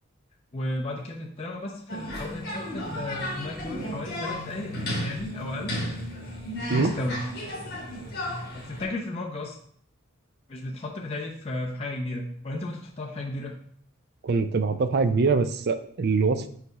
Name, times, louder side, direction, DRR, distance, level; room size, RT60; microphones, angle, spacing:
voice 1, 0.5-5.7 6.7-7.2 8.5-9.6 10.5-13.6, left 1 dB, 30° left, -2 dB, 0.6 m, -34 dB
sound 1, 1.9-8.8, equal, 50° left, 1.6 m, -34 dB
voice 2, 14.2-16.5, right 4 dB, 50° right, 10 dB, 0.4 m, -23 dB
5.0 x 4.7 x 4.0 m, 0.62 s
head